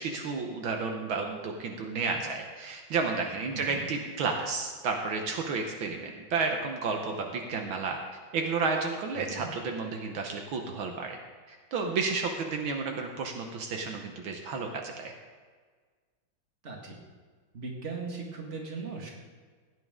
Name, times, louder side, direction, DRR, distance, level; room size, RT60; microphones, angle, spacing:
voice 1, 0.0-8.0 8.3-11.2 11.5-15.1, right 4 dB, 75° right, 3 dB, 1.8 m, -32 dB
voice 2, 3.5-3.9 9.1-9.5 16.6-17.0 17.5-19.1, right 4 dB, 35° right, 0 dB, 2.1 m, -38 dB
16.0 x 9.5 x 3.7 m, 1.5 s
omnidirectional pair, 2.2 m